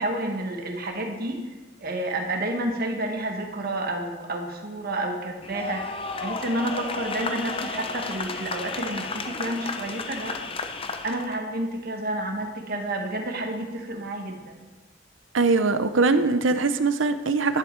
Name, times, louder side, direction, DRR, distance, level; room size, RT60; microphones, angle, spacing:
voice 1, 0.0-1.5 1.8-5.9 6.2-10.4 11.0-14.7, right 1 dB, 50° right, 2 dB, 1.6 m, -30 dB
sound 1, 5.4-11.3, left 4 dB, 25° left, 0.7 m, -33 dB
voice 2, 15.3-17.6, right 3 dB, 65° right, 10 dB, 0.7 m, -22 dB
11.5 x 10.5 x 4.6 m, 1.3 s
head